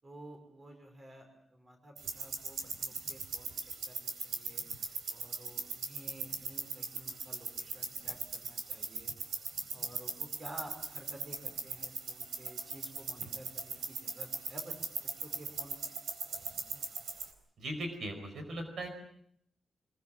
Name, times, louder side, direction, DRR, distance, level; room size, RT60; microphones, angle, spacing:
voice 1, 0.0-4.6 5.1-9.1 9.7-14.8 15.0-15.8, right 1 dB, 25° right, 4 dB, 5.6 m, -52 dB
sound 1, 2.0-17.3, right 5 dB, 90° right, 4.1 m, -40 dB
voice 2, 17.6-18.9, right 1 dB, 60° right, 6 dB, 5.2 m, -38 dB
25.0 x 22.5 x 7.6 m, 0.69 s
wide cardioid pair, 175°, 0 cm